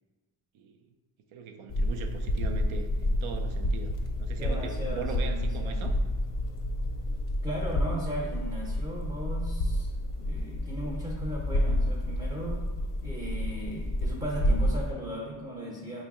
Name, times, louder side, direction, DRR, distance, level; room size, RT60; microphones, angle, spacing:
voice 1, 1.3-3.9 4.2-6.0, right 6 dB, 85° right, 6 dB, 0.5 m, -40 dB
sound 1, 1.7-14.9, left 1 dB, 45° left, 0.5 m, -29 dB
voice 2, 4.4-5.8 7.4-9.9 10.2-12.7 13.0-16.0, right 1 dB, 10° right, -3 dB, 0.5 m, -37 dB
4.9 x 2.0 x 3.5 m, 1.4 s
cardioid pair, 100°, 47 cm